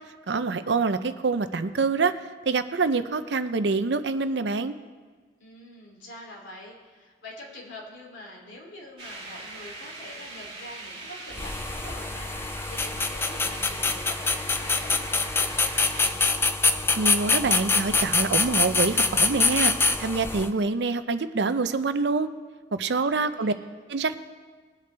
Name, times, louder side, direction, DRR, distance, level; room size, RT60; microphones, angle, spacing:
voice 1, 0.3-2.1 2.5-4.7 17.0-19.7 20.0-22.3 22.7-23.5 23.9-24.2, right 4 dB, 70° right, 11 dB, 0.6 m, -25 dB
voice 2, 5.4-16.5 23.0-23.8, left 1 dB, 90° left, -2 dB, 3.0 m, -45 dB
sound 1, 9.0-16.1, right 2 dB, 30° right, 2.7 m, -41 dB
sound 2, 11.3-20.5, left 4 dB, 15° left, 0.4 m, -25 dB
21.0 x 8.1 x 3.4 m, 1.4 s
head